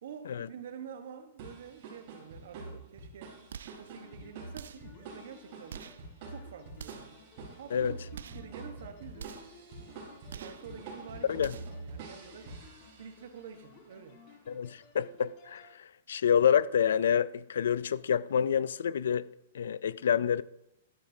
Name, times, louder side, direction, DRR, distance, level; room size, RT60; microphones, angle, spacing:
voice 1, 0.0-3.4 3.8-5.8 6.3-7.2 7.6-9.4 10.4-12.6 13.0-14.6, right 7 dB, 65° right, 1.2 m, -48 dB
sound 1, 1.4-13.3, right 3 dB, 40° right, 3.9 m, -47 dB
sound 2, 3.5-3.9 4.5-5.0 5.7-6.1 6.7-7.2 8.1-8.5 9.2-9.6 10.3-10.7 11.4-11.8, right 7 dB, 85° right, 0.4 m, -46 dB
sound 3, 4.0-15.7, left 5 dB, 35° left, 1.6 m, -57 dB
voice 2, 14.5-15.7 16.1-19.3 19.5-20.4, left 8 dB, 85° left, 0.3 m, -27 dB
12.5 x 9.9 x 2.7 m
hypercardioid pair, 170°, 0 cm